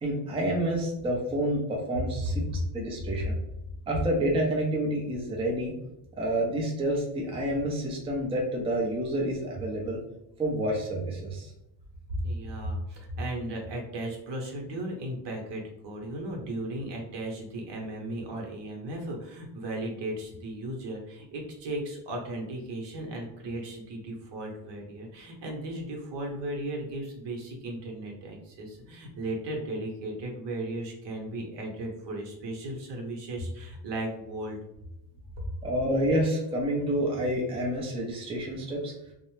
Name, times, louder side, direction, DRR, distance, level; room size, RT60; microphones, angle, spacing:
voice 1, 0.0-2.4 2.7-3.3 3.9-5.7 6.2-10.0 10.4-11.5 35.6-38.9, right 1 dB, 10° right, -2 dB, 0.4 m, -28 dB
voice 2, 12.1-34.6, right 1 dB, 60° right, 1 dB, 0.9 m, -36 dB
2.6 x 2.1 x 3.0 m, 0.84 s
cardioid pair, 120°, 48 cm